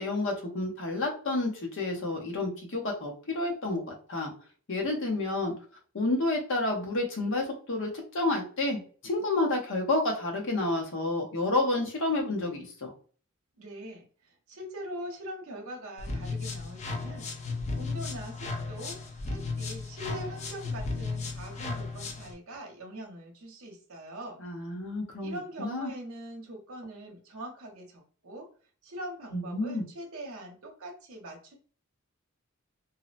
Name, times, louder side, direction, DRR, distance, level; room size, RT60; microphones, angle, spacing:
voice 1, 0.0-4.3 4.7-5.5 5.9-12.9 24.4-25.9 29.3-29.8, left 2 dB, 60° left, 1 dB, 0.7 m, -30 dB
voice 2, 13.6-24.4 25.2-28.5 28.8-31.6, right 1 dB, 70° right, 1 dB, 0.7 m, -42 dB
sound 1, 16.0-22.3, left 3 dB, 30° left, 0.4 m, -35 dB
2.6 x 2.0 x 2.4 m, 0.41 s
head